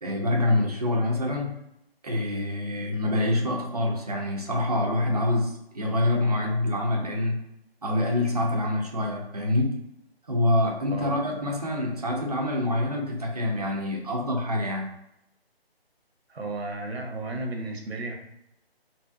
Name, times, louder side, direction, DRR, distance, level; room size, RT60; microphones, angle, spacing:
voice 1, 0.0-1.6 2.0-7.4 7.8-9.8 10.3-14.9, left 1 dB, 40° right, 1 dB, 0.5 m, -26 dB
voice 2, 16.3-18.1, right 2 dB, 80° right, 3 dB, 0.8 m, -33 dB
2.7 x 2.6 x 2.3 m, 0.80 s
figure-of-eight pair, 165°, 31 cm